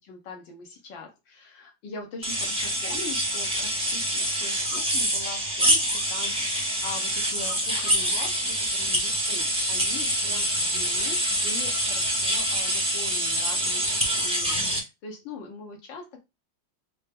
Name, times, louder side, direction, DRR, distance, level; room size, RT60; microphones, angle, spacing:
voice 1, 0.1-16.2, left 3 dB, 75° left, 2 dB, 1.6 m, -42 dB
sound 1, 2.2-14.8, equal, 10° right, 0.3 m, -26 dB
4.5 x 2.0 x 3.3 m, 0.23 s
omnidirectional pair, 2.1 m